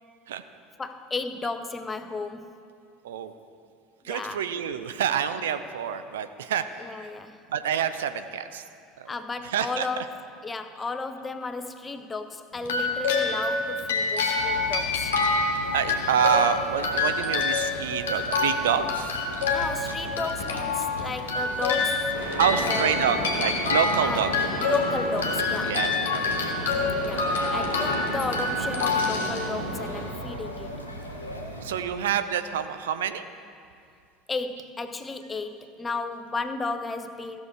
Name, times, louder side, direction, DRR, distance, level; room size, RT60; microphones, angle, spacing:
voice 1, 0.8-2.6 4.0-4.5 6.8-7.4 9.1-10.1 10.4-15.1 19.5-22.2 22.5-22.9 24.0-24.2 24.6-25.8 27.0-30.8 34.3-37.4, left 3 dB, 20° left, 10 dB, 0.6 m, -34 dB
voice 2, 4.0-7.1 7.5-8.6 9.0-9.1 9.4-10.1 15.7-19.1 20.2-20.3 22.4-24.3 25.6-26.3 28.8-28.9 31.6-33.2, right 8 dB, 70° right, 10 dB, 0.4 m, -27 dB
green sleves-music box, 12.6-30.0, left 3 dB, 70° left, 1.2 m, -27 dB
sound 1, 14.4-31.8, equal, 85° left, 0.9 m, -39 dB
sound 2, 22.1-30.0, right 1 dB, 85° right, 1.8 m, -34 dB
16.0 x 6.4 x 4.6 m, 2.4 s
figure-of-eight pair, 70°, 0 cm